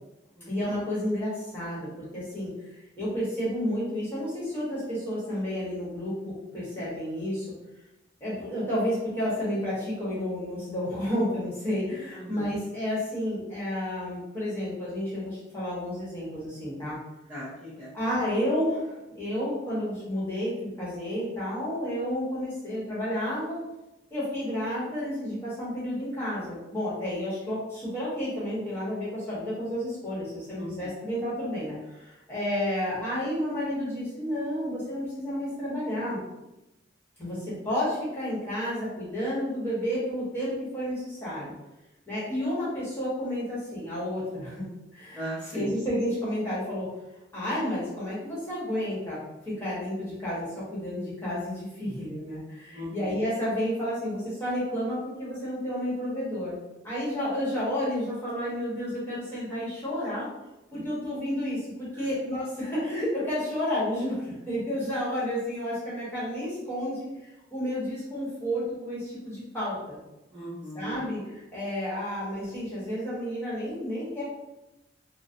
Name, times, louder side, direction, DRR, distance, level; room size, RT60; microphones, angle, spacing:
voice 1, 0.5-7.5 8.2-17.0 17.9-23.6 24.1-36.2 37.2-41.5 42.1-46.9 47.3-56.6 56.8-60.3 60.7-70.0 70.7-74.2, equal, 10° left, -10 dB, 1.1 m, -31 dB
voice 2, 12.2-12.5 17.3-17.9 30.6-30.7 45.1-45.7 52.7-53.1 60.7-60.9 61.9-62.1 70.3-71.0, equal, 10° right, -12 dB, 0.6 m, -38 dB
3.1 x 2.0 x 2.5 m, 0.96 s
head